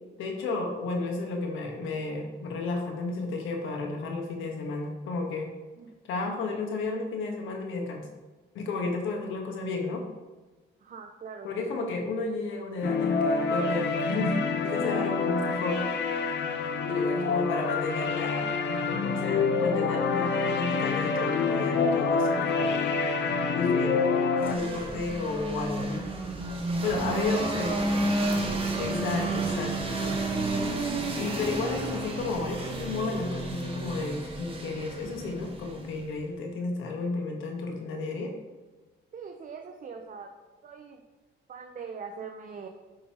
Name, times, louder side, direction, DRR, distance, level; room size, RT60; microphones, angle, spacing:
voice 1, 0.2-5.5 6.1-8.1 8.5-10.0 11.4-14.4 14.6-15.9 16.9-23.0 23.5-24.0 24.4-26.0 26.8-27.7 28.8-30.1 31.2-38.3, left 3 dB, 85° left, 2 dB, 1.3 m, -32 dB
voice 2, 10.8-11.7 17.0-17.2 27.2-28.1 30.3-30.9 39.1-40.3 40.6-41.0 41.5-42.7, right 5 dB, 45° right, 4 dB, 0.7 m, -42 dB
sound 1, 12.8-24.5, left 4 dB, 60° left, 0.8 m, -27 dB
sound 2, 24.4-36.2, right 2 dB, 25° right, 1.3 m, -31 dB
9.0 x 5.4 x 2.9 m, 1.2 s
cardioid pair, 90°, 20 cm